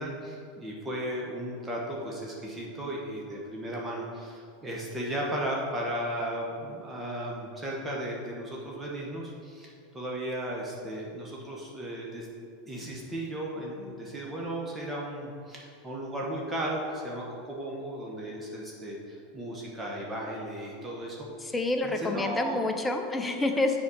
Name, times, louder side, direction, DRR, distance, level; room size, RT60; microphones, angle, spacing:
voice 1, 0.0-12.3 12.7-21.5 21.8-22.6, right 1 dB, 15° right, -3 dB, 1.4 m, -35 dB
voice 2, 21.4-23.8, left 2 dB, 15° left, 5 dB, 0.8 m, -28 dB
7.0 x 4.2 x 6.5 m, 2.4 s
hypercardioid pair, 90°, 0 cm